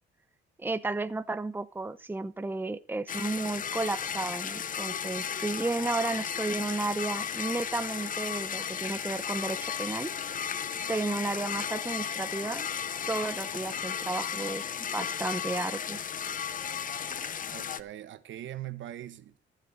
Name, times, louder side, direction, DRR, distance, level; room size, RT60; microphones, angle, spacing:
voice 1, 0.6-10.1 10.9-12.7 13.1-16.0, right 3 dB, 10° right, 0.8 m, -33 dB
sound 1, 3.1-17.8, left 8 dB, 40° left, 0.7 m, -34 dB
voice 2, 17.5-19.4, right 13 dB, 75° right, 1.3 m, -41 dB
14.0 x 6.6 x 6.5 m
cardioid pair, 90°, 20 cm